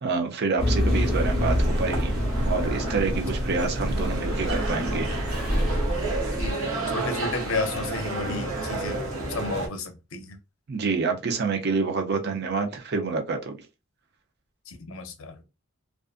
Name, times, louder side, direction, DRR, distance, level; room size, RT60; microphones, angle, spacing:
voice 1, 0.0-2.1 2.4-5.1 10.7-13.6, right 4 dB, 55° right, 0.5 m, -27 dB
sound 1, 0.6-6.5, equal, 5° right, 0.9 m, -26 dB
sound 2, 0.9-9.7, right 2 dB, 85° right, 0.8 m, -31 dB
voice 2, 6.4-9.0 9.3-10.4 14.7-15.4, left 3 dB, 75° left, 0.6 m, -32 dB
2.4 x 2.4 x 2.4 m
head